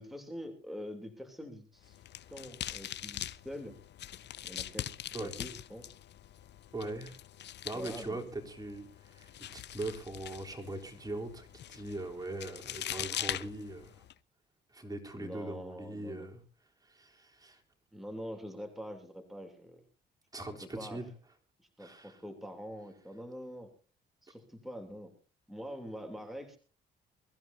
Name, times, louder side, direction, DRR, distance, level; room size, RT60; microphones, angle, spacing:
voice 1, 0.0-2.0 2.3-3.8 4.4-6.0 7.7-8.2 15.1-16.3 17.9-19.8 20.6-21.0 21.6-23.7 24.2-25.1 25.5-26.6, equal, ahead, 3 dB, 3.2 m, -45 dB
sound 1, 1.8-14.1, left 11 dB, 60° left, 0.7 m, -43 dB
voice 2, 6.7-7.2 7.6-14.0 14.7-16.4 16.8-17.6 20.3-21.1 21.8-22.2, right 2 dB, 20° right, 2 dB, 3.6 m, -41 dB
23.0 x 14.5 x 2.8 m, 0.36 s
cardioid pair, 90°, 20 cm